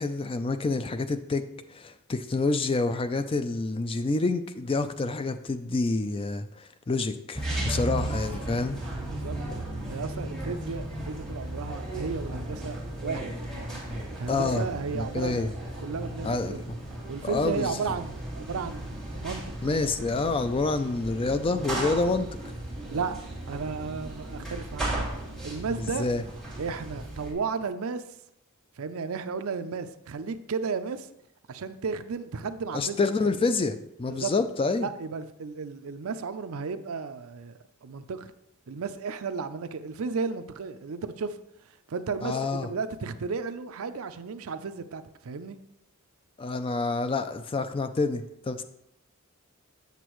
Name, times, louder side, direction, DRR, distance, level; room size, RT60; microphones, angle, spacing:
voice 1, 0.0-1.4 1.7-8.8 14.3-14.6 14.9-15.5 16.2-16.6 17.2-17.7 19.6-22.3 25.8-26.2 32.7-34.9 42.2-42.7 46.4-48.6, left 3 dB, 25° left, 0.3 m, -28 dB
sound 1, 7.3-27.3, right 1 dB, ahead, 2.6 m, -35 dB
voice 2, 9.0-9.4 9.9-15.4 15.8-16.8 17.1-19.4 22.9-23.2 23.5-25.1 25.4-26.1 26.6-28.0 28.8-31.1 31.5-33.3 34.1-34.3 34.8-37.5 37.8-38.3 38.7-41.4 41.9-45.6, right 5 dB, 65° right, 0.5 m, -34 dB
8.2 x 6.8 x 3.1 m
head